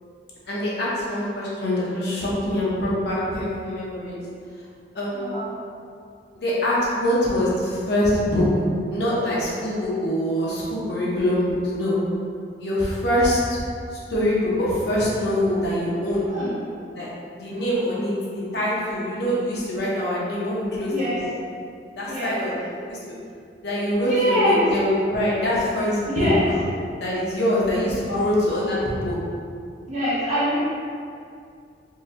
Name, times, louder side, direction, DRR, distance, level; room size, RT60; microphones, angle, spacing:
voice 1, 0.5-4.1 4.9-5.3 6.3-8.4 8.9-12.0 12.6-13.6 13.9-16.3 16.9-17.1 17.3-21.3 22.0-22.5 22.9-23.0 23.6-26.3 27.0-29.2, left 1 dB, 65° left, -6 dB, 0.9 m, -24 dB
voice 2, 5.1-5.5 16.3-16.5 20.9-21.2 22.1-22.4 24.0-24.7 26.0-26.4 28.1-28.3 29.9-30.6, equal, 40° right, -11 dB, 1.3 m, -24 dB
4.5 x 2.7 x 2.6 m, 2.3 s
head